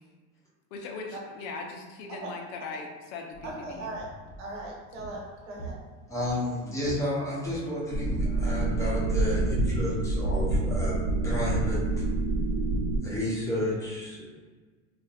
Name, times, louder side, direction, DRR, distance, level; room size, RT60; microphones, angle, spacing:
voice 1, 0.7-3.9, left 4 dB, 90° left, 2 dB, 0.7 m, -39 dB
sound 1, 3.3-12.0, right 2 dB, 45° left, 0.7 m, -45 dB
voice 2, 3.4-4.1 4.4-5.8, right 2 dB, 85° right, -2 dB, 1.2 m, -38 dB
voice 3, 6.1-11.0 11.2-12.0 13.0-14.2, left 1 dB, 10° left, -7 dB, 0.7 m, -31 dB
sound 2, 7.9-13.0, right 2 dB, 70° right, 0.9 m, -27 dB
2.5 x 2.5 x 4.1 m, 1.4 s
cardioid pair, 160°, 36 cm